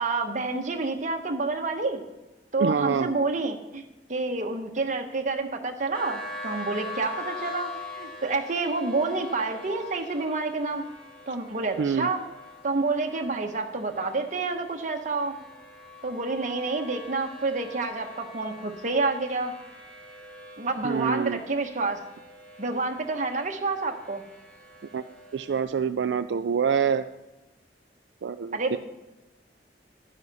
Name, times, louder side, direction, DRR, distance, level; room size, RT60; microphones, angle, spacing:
voice 1, 0.0-2.0 2.5-3.8 4.1-10.8 11.3-12.2 12.6-15.4 16.0-19.5 20.6-22.0 22.6-24.2 28.5-28.8, right 3 dB, 45° right, 4 dB, 1.1 m, -28 dB
voice 2, 2.6-3.1 11.8-12.1 20.8-21.4 24.9-25.0 25.3-27.1 28.2-28.8, right 6 dB, 80° right, 9 dB, 0.4 m, -26 dB
sound 1, 5.9-25.6, left 2 dB, 5° left, 1.6 m, -43 dB
11.0 x 9.8 x 4.1 m, 1.1 s
head